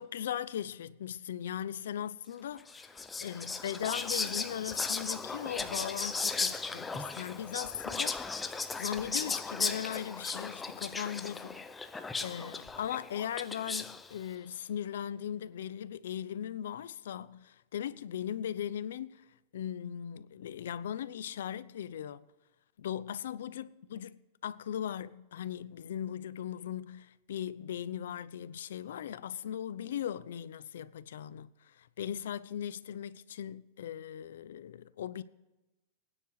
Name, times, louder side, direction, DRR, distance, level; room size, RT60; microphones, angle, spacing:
voice 1, 0.0-2.9 3.2-11.6 11.9-19.2 19.5-22.2 22.8-35.2, left 9 dB, 80° left, 0.7 m, -39 dB
Whispering, 2.7-14.1, left 4 dB, 5° left, 0.5 m, -36 dB
23.5 x 9.9 x 4.9 m
supercardioid pair, 175°, 0 cm